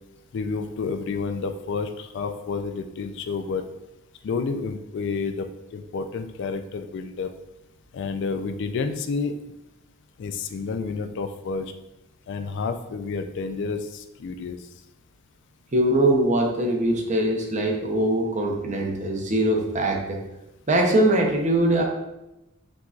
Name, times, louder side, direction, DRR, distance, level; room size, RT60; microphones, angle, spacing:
voice 1, 0.3-3.7 4.2-5.5 5.7-7.3 7.9-9.3 10.2-11.7 12.3-14.6, left 4 dB, 60° left, 8 dB, 0.3 m, -30 dB
voice 2, 15.7-20.2 20.7-21.8, right 1 dB, 35° right, 1 dB, 0.7 m, -22 dB
7.3 x 2.6 x 2.4 m, 0.93 s
head